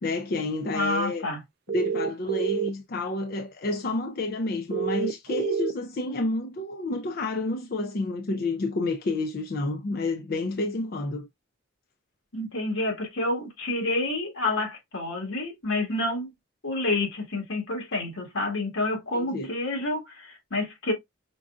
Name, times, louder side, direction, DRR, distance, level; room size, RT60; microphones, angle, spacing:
voice 1, 0.0-1.3 1.7-11.3 19.1-19.5, left 2 dB, 50° left, 0.4 m, -29 dB
voice 2, 0.7-1.4 12.3-16.3 16.6-20.9, left 2 dB, 80° left, 1.9 m, -28 dB
sound 1, 1.7-2.7 4.7-5.7, right 6 dB, 50° right, 0.3 m, -28 dB
5.2 x 2.4 x 2.4 m
head